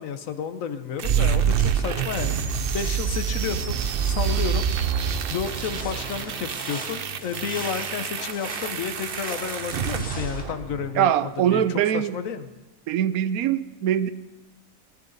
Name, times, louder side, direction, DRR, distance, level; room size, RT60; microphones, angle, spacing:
voice 1, 0.0-5.0 5.3-11.6 11.9-12.5, left 7 dB, 70° left, 9 dB, 1.2 m, -32 dB
sound 1, 1.0-11.0, right 7 dB, 55° right, 0.7 m, -27 dB
sound 2, 5.4-10.4, equal, 5° left, 2.1 m, -39 dB
voice 2, 10.9-12.2 12.9-14.1, right 10 dB, 90° right, 14 dB, 1.1 m, -22 dB
19.5 x 11.5 x 4.0 m, 1.0 s
omnidirectional pair, 1.5 m